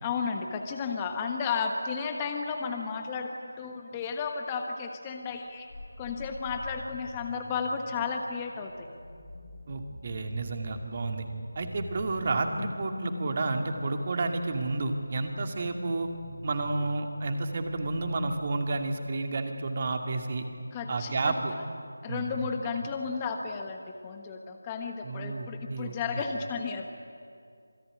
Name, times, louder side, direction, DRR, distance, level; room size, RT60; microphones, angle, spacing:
voice 1, 0.0-5.7 6.0-8.9 20.7-21.6 22.0-26.9, left 5 dB, 15° left, 4 dB, 1.2 m, -33 dB
sound 1, 5.6-18.9, left 2 dB, 55° left, 3.3 m, -45 dB
voice 2, 9.7-11.2 11.6-16.1 16.4-20.5 20.9-21.5 22.1-22.4 25.0-26.0, right 3 dB, 30° right, 5 dB, 2.4 m, -31 dB
26.5 x 20.5 x 10.0 m, 2.3 s
figure-of-eight pair, 175°, 0 cm